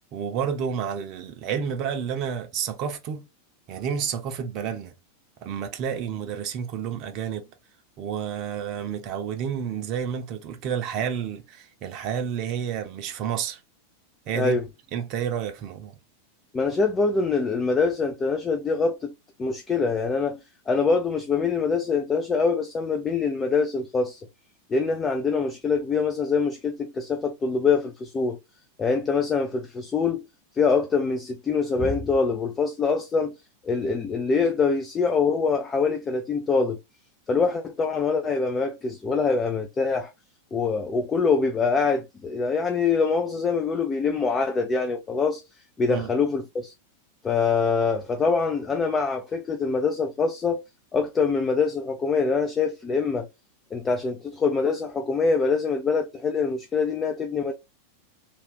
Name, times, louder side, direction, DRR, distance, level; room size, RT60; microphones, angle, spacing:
voice 1, 0.1-3.2 3.7-4.9 5.4-7.5 8.0-13.6 14.3-14.6 14.9-15.9 45.9-46.1, right 8 dB, 40° right, 0.7 m, -30 dB
voice 2, 16.5-19.1 19.4-24.2 24.7-28.4 28.8-30.3 30.6-33.3 33.6-36.8 37.3-40.1 40.5-45.4 45.8-46.7 47.2-50.6 50.9-53.3 53.7-57.5, left 4 dB, 20° left, 0.5 m, -24 dB
3.5 x 2.4 x 3.8 m
figure-of-eight pair, 90°, 0 cm